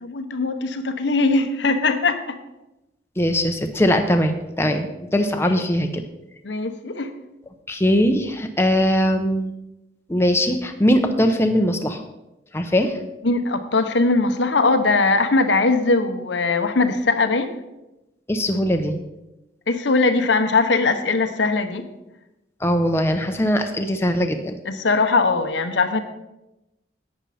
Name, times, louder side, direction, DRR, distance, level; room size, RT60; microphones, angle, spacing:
voice 1, 0.0-2.4 6.4-7.1 13.2-17.6 19.7-21.9 24.7-26.0, left 3 dB, 80° left, 8 dB, 0.9 m, -20 dB
voice 2, 3.2-6.0 7.7-9.5 10.1-12.0 12.5-13.0 18.3-19.0 22.6-24.5, equal, 15° left, 5 dB, 0.7 m, -20 dB
11.5 x 8.9 x 4.2 m, 0.95 s
head